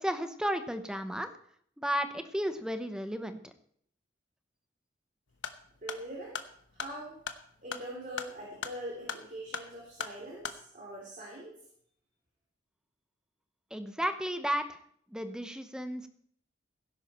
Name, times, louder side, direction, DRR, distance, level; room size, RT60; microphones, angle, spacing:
voice 1, 0.0-1.3 1.8-3.5 13.7-14.8 15.1-16.1, equal, 5° right, 9 dB, 0.9 m, -33 dB
sound 1, 5.3-10.6, left 5 dB, 70° left, 1.1 m, -41 dB
voice 2, 5.8-6.3 6.7-7.2 7.6-11.5, right 1 dB, 40° right, -3 dB, 3.4 m, -42 dB
17.5 x 10.5 x 4.4 m, 0.65 s
head